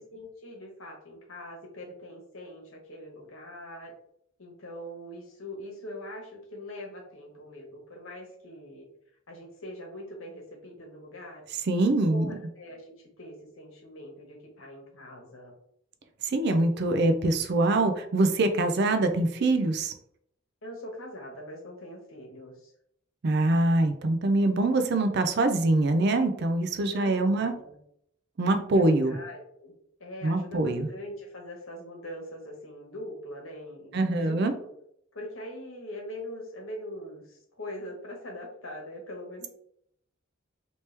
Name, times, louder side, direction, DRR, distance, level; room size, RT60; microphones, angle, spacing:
voice 1, 0.1-3.9 4.4-8.9 9.3-11.4 11.9-12.8 13.2-15.5 20.6-22.7 26.9-27.7 28.7-29.7 30.0-34.5 35.1-39.5, left 1 dB, 75° left, 0 dB, 1.2 m, -42 dB
voice 2, 11.7-12.4 16.2-19.9 23.2-27.5 28.4-29.2 30.2-30.9 33.9-34.5, right 2 dB, 55° right, 7 dB, 0.4 m, -24 dB
3.1 x 2.9 x 3.2 m, 0.69 s
head